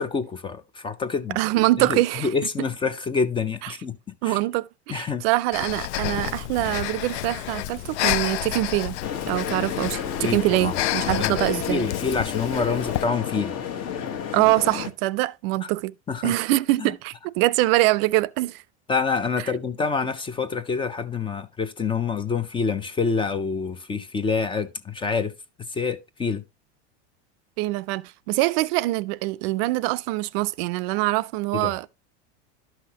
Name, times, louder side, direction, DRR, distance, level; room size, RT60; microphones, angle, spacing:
voice 1, 0.0-1.4 1.8-4.4 4.9-5.2 10.2-10.8 11.2-11.3 11.7-13.6 15.6-15.7 16.1-16.3 16.8-16.9 18.9-25.3 25.7-26.4 31.5-31.7, left 5 dB, 15° left, 0.4 m, -27 dB
voice 2, 1.4-2.3 4.2-9.0 9.3-11.8 14.3-15.9 16.2-18.6 27.6-31.9, right 19 dB, 60° right, 0.5 m, -24 dB
Breathing, 5.5-13.0, left 14 dB, 75° left, 0.5 m, -30 dB
sound 1, 9.0-14.9, left 8 dB, 45° left, 1.2 m, -31 dB
11.5 x 5.7 x 2.8 m
supercardioid pair, 125°, 34 cm